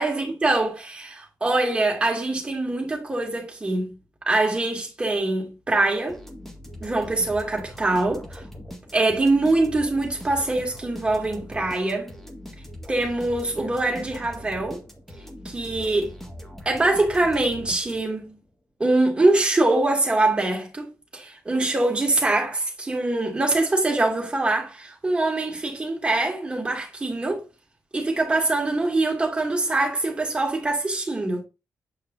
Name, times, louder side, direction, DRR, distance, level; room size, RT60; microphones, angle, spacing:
voice 1, 0.0-3.9 4.3-6.2 6.8-8.4 8.9-12.1 12.9-14.8 15.4-16.1 16.6-18.3 18.8-27.4 27.9-31.4, right 2 dB, 20° right, 2.7 m, -23 dB
sound 1, 6.1-18.3, equal, 5° left, 1.9 m, -41 dB
9.0 x 5.3 x 2.8 m
wide cardioid pair, 135°, 6 cm